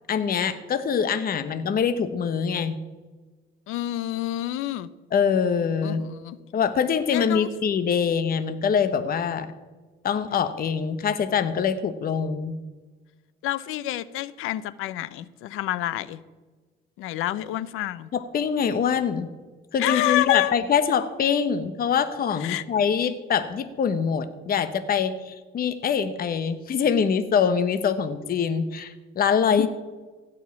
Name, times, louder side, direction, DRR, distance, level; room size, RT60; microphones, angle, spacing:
voice 1, 0.1-2.8 5.1-6.1 6.5-9.5 10.0-12.6 18.1-19.3 19.7-29.7, left 7 dB, 45° left, 11 dB, 0.9 m, -24 dB
voice 2, 3.7-4.9 5.8-6.4 7.1-7.5 13.4-16.2 17.0-18.1 19.8-20.5 22.4-22.6 29.5-29.7, left 15 dB, 80° left, 18 dB, 0.7 m, -28 dB
16.0 x 5.5 x 9.5 m, 1.3 s
cardioid pair, 105°, 21 cm